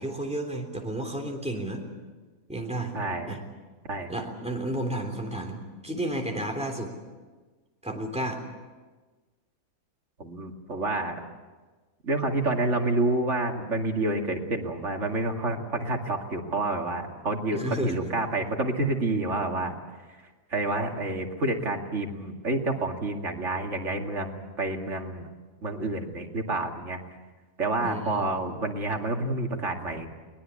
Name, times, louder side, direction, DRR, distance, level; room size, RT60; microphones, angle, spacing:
voice 1, 0.0-1.8 2.5-2.9 3.3-3.4 4.1-6.9 7.8-8.4 17.5-17.9 27.8-28.2, right 1 dB, 5° right, 1 dB, 3.3 m, -32 dB
voice 2, 2.9-3.4 3.9-4.1 10.2-11.2 12.0-19.8 20.1-20.2 20.5-25.3 25.6-27.0 27.6-30.1, right 2 dB, 55° right, 2 dB, 2.6 m, -28 dB
23.0 x 20.0 x 8.4 m, 1.3 s
omnidirectional pair, 1.5 m